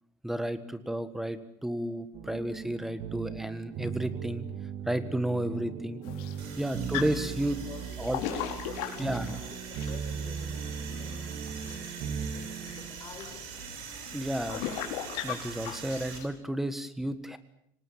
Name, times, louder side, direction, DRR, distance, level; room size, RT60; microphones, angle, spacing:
voice 1, 0.2-4.4 4.9-6.0 6.6-7.6 8.0-8.2 9.0-9.3 14.1-14.7 15.2-17.4, right 1 dB, 5° right, 13 dB, 1.6 m, -32 dB
sound 1, 2.1-13.1, right 7 dB, 55° right, 2.1 m, -38 dB
sound 2, 6.0-16.3, left 11 dB, 90° left, 4.3 m, -40 dB
sound 3, 6.4-16.2, right 7 dB, 75° right, 5.6 m, -44 dB
voice 2, 6.6-7.2 7.6-8.2 8.8-13.6, left 5 dB, 35° left, 4 dB, 5.3 m, -50 dB
26.5 x 19.0 x 9.0 m, 0.72 s
cardioid pair, 160°, 10 cm